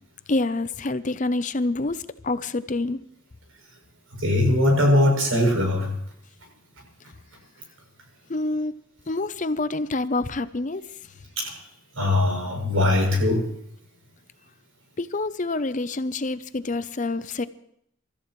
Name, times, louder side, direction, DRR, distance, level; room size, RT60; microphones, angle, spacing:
voice 1, 0.3-3.0 8.3-8.7 9.1-10.8 15.0-17.5, left 2 dB, 40° left, 0.7 m, -27 dB
voice 2, 4.1-6.0 11.4-11.6 12.0-13.5, left 1 dB, 85° right, 7.8 m, -21 dB
28.0 x 14.0 x 3.2 m
head